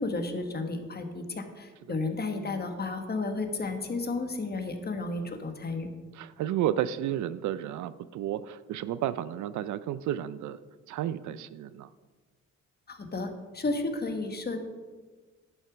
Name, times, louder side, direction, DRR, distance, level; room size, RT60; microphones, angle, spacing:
voice 1, 0.0-5.9 12.9-14.6, left 3 dB, 30° left, 6 dB, 1.4 m, -32 dB
voice 2, 6.2-10.6 10.9-11.9, right 12 dB, 75° right, 15 dB, 0.5 m, -32 dB
11.0 x 6.3 x 5.1 m, 1.3 s
cardioid pair, 90°, 30 cm